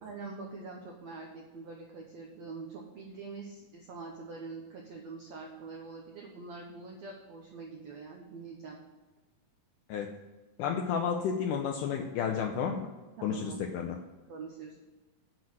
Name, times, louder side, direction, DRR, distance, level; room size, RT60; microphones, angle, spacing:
voice 1, 0.0-8.8 13.2-13.7 14.3-14.8, right 4 dB, 80° right, -1 dB, 1.5 m, -44 dB
voice 2, 10.6-12.9 13.2-14.0, left 7 dB, 85° left, 2 dB, 1.9 m, -31 dB
7.7 x 6.1 x 6.3 m, 1.2 s
omnidirectional pair, 4.3 m